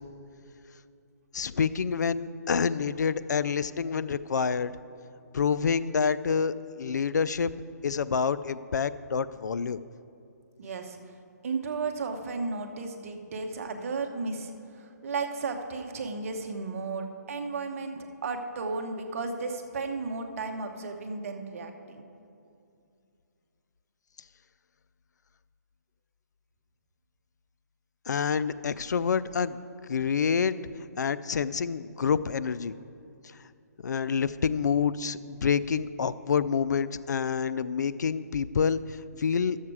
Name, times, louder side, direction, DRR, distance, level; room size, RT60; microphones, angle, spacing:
voice 1, 1.3-4.7 5.3-7.5 7.8-9.8 28.1-30.6 31.0-32.7 33.8-39.6, left 6 dB, 80° left, 15 dB, 0.4 m, -27 dB
voice 2, 10.6-11.0 11.4-14.5 14.8-22.0, right 4 dB, 50° right, 5 dB, 1.1 m, -34 dB
12.0 x 7.4 x 4.8 m, 2.5 s
hypercardioid pair, 155°, 9 cm